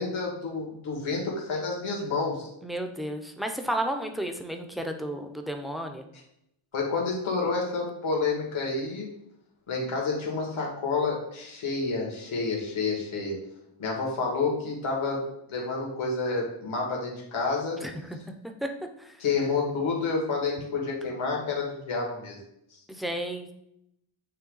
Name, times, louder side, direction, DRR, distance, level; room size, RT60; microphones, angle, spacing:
voice 1, 0.0-2.5 6.7-9.1 9.7-13.4 13.8-15.2 15.5-17.8 19.2-22.4, left 4 dB, 75° left, -2 dB, 2.0 m, -29 dB
voice 2, 2.6-6.1 17.8-17.9 18.4-18.7 19.0-19.2 22.9-23.5, right 1 dB, ahead, 5 dB, 0.4 m, -32 dB
9.0 x 3.1 x 3.8 m, 0.78 s
wide cardioid pair, 165°, 49 cm